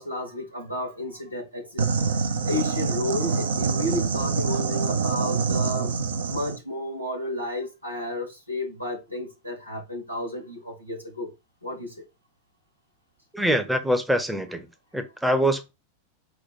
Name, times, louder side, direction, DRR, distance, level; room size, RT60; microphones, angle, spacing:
voice 1, 0.0-1.9 2.4-5.9 6.3-11.3 11.6-11.9, left 1 dB, 90° right, 1.2 m, -32 dB
sound 1, 1.8-6.6, right 4 dB, 65° right, 0.5 m, -25 dB
voice 2, 13.3-14.7 14.9-15.7, equal, 5° right, 0.6 m, -24 dB
4.3 x 2.2 x 4.5 m
figure-of-eight pair, 90°, 0 cm